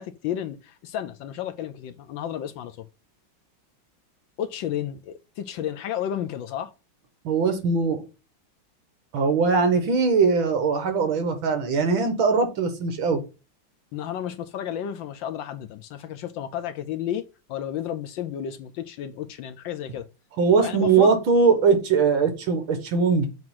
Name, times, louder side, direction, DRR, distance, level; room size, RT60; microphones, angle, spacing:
voice 1, 0.0-2.9 4.4-6.7 13.9-20.1 20.6-21.1, left 10 dB, 75° left, 1.2 m, -32 dB
voice 2, 7.2-8.0 9.1-13.2 20.4-23.3, right 5 dB, 70° right, 2.1 m, -21 dB
7.6 x 3.0 x 5.5 m
omnidirectional pair, 2.3 m